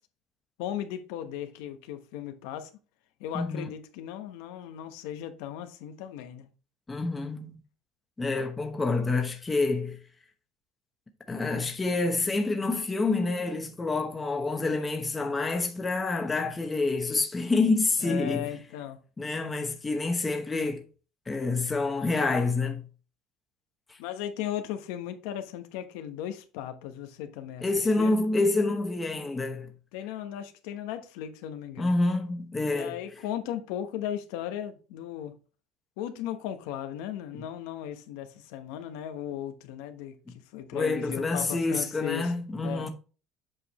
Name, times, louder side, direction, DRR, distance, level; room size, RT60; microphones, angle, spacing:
voice 1, 0.6-2.7 3.2-6.5 18.0-19.0 24.0-27.6 28.0-28.2 29.9-32.0 32.6-35.3 36.0-42.3 42.6-42.9, left 10 dB, 85° left, 1.1 m, -36 dB
voice 2, 3.3-3.7 6.9-7.6 8.2-10.0 11.3-18.5 19.2-20.8 21.3-22.8 23.9-24.0 27.6-29.7 31.8-33.0 40.7-42.9, left 3 dB, 10° left, 0.9 m, -27 dB
7.7 x 5.0 x 3.0 m
cardioid pair, 165°, 0 cm